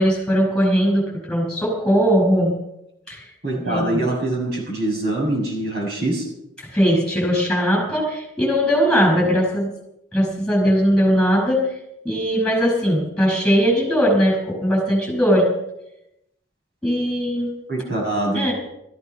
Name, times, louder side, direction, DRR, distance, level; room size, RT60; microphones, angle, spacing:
voice 1, 0.0-2.6 3.1-3.3 3.6-4.0 6.6-9.7 10.1-11.7 12.0-15.5 16.8-17.5 18.3-18.5, equal, 5° left, -1 dB, 5.6 m, -19 dB
voice 2, 3.4-6.2 17.7-18.5, right 2 dB, 50° right, -1 dB, 7.5 m, -24 dB
16.5 x 14.0 x 5.8 m, 0.84 s
head